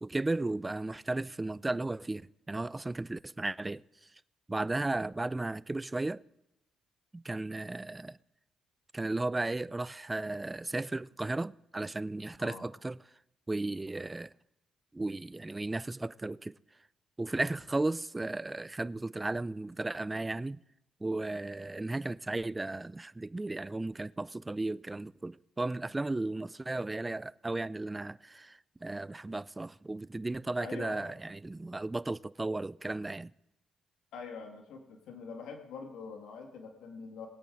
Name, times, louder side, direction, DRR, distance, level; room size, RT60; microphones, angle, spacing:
voice 1, 0.0-3.8 4.5-6.2 7.1-8.2 8.9-13.0 13.5-14.3 14.9-16.5 17.2-20.6 21.0-33.3, right 2 dB, 15° right, 0.3 m, -35 dB
voice 2, 30.6-31.1 34.1-37.3, left 5 dB, 80° left, 2.0 m, -44 dB
22.0 x 8.4 x 3.9 m
cardioid pair, 90°, 0 cm